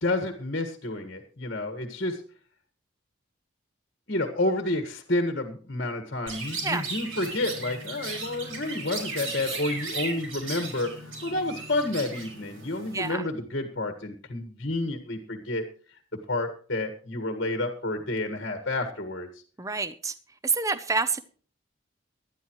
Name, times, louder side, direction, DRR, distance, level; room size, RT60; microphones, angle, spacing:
voice 1, 0.0-2.2 4.1-15.6 16.3-19.3, left 2 dB, 50° left, 7 dB, 1.7 m, -30 dB
Chirp tweet, 6.3-13.1, right 3 dB, 80° right, 4.9 m, -36 dB
voice 2, 12.9-13.2 19.6-20.1 20.4-21.2, right 4 dB, 15° right, 13 dB, 0.6 m, -27 dB
19.0 x 12.0 x 3.1 m, 0.41 s
head